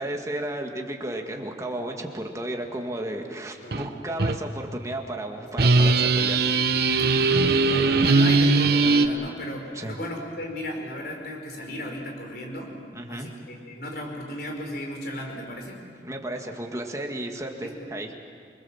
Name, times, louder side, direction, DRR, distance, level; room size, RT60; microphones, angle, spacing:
voice 1, 0.0-6.4 6.9-7.0 9.7-10.0 12.9-13.3 15.8-18.1, right 1 dB, 20° right, 2 dB, 2.0 m, -33 dB
sound 1, 3.7-3.9 4.2-4.4 5.6-9.1, right 3 dB, 60° right, 1.0 m, -20 dB
voice 2, 7.0-12.7 13.1-15.8 17.6-17.9, left 1 dB, 60° left, 1 dB, 4.6 m, -35 dB
27.5 x 21.0 x 7.3 m, 2.1 s
head